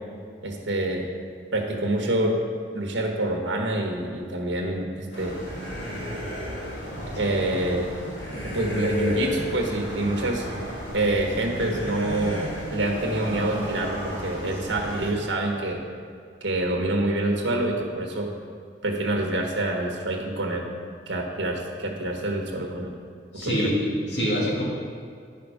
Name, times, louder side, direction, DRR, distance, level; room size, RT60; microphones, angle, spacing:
voice 1, 0.4-1.1 1.5-2.3 2.7-5.4 7.1-7.9 8.3-10.5 10.9-15.8 16.4-18.3 18.8-20.6 21.1-22.9 23.3-23.7, right 1 dB, 80° right, 1 dB, 1.4 m, -26 dB
sound 1, 5.1-15.1, left 1 dB, 85° left, 2.3 m, -33 dB
voice 2, 23.3-24.6, equal, 65° left, -4 dB, 2.4 m, -25 dB
10.5 x 5.9 x 5.0 m, 2.2 s
head